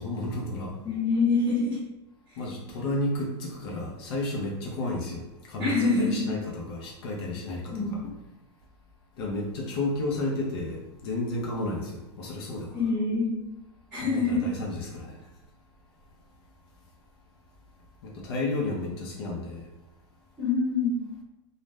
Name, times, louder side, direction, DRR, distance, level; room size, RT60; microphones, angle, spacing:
voice 1, 0.0-0.8 2.4-7.9 9.2-12.8 13.9-15.2 18.0-19.6, left 2 dB, 60° left, -1 dB, 0.6 m, -32 dB
voice 2, 0.8-1.8 5.6-6.2 7.7-8.0 12.7-13.4 13.9-14.4 20.4-21.0, left 3 dB, 5° right, -7 dB, 0.7 m, -25 dB
2.4 x 2.0 x 3.2 m, 0.94 s
supercardioid pair, 135°, 15 cm